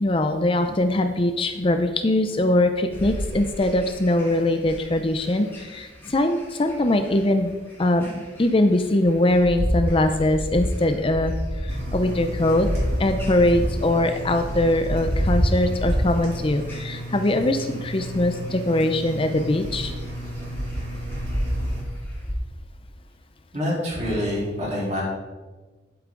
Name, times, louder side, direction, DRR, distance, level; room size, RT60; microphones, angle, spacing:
voice 1, 0.0-7.5 7.8-11.3 11.6-12.7 13.0-19.9, left 1 dB, 30° left, 7 dB, 0.6 m, -22 dB
sound 1, 2.9-22.3, equal, 15° left, 2.4 m, -30 dB
Engine, 11.7-21.8, equal, 65° right, 3.3 m, -35 dB
voice 2, 23.5-25.0, left 1 dB, 40° right, -5 dB, 3.8 m, -26 dB
12.0 x 8.2 x 3.9 m, 1.3 s
head